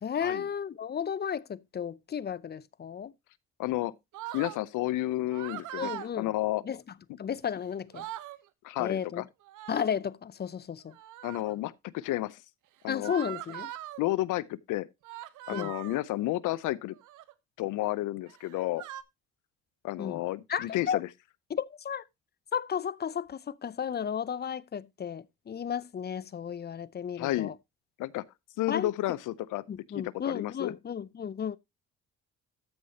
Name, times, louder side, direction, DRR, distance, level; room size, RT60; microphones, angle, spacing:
voice 1, 0.0-3.1 5.8-6.3 6.6-6.8 7.2-8.1 8.8-9.2 9.7-11.0 12.9-13.7 15.5-15.7 20.0-20.2 20.5-21.0 21.5-22.0 22.5-27.5 28.7-28.9 29.7-31.6, left 8 dB, 35° left, 0.5 m, -33 dB
voice 2, 3.6-3.9 4.3-6.6 8.6-9.2 11.2-12.4 12.8-13.1 14.0-14.9 15.5-17.0 17.6-18.8 19.8-21.1 27.2-27.5 28.0-28.2 28.6-29.6 29.9-30.7, left 16 dB, 85° left, 0.6 m, -31 dB
sound 1, 4.1-4.6 5.3-6.1 7.4-7.5 7.8-8.4 9.4-10.0 10.9-11.5 13.0-14.0 15.0-16.0 16.9-17.3 18.3-19.0, right 13 dB, 85° right, 0.8 m, -41 dB
13.5 x 6.3 x 2.8 m
cardioid pair, 90°, 30 cm